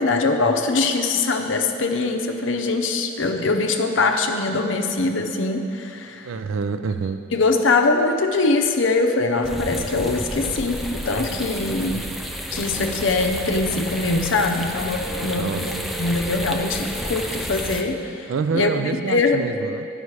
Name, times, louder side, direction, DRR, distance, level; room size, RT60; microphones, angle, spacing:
voice 1, 0.0-6.3 7.3-12.0 12.5-19.4, left 3 dB, 70° left, 4 dB, 0.6 m, -22 dB
voice 2, 6.2-7.2 15.3-15.6 18.3-19.9, right 5 dB, 80° right, 11 dB, 0.4 m, -26 dB
sound 1, 9.4-17.8, equal, ahead, 0.4 m, -31 dB
11.0 x 5.4 x 4.7 m, 2.7 s
head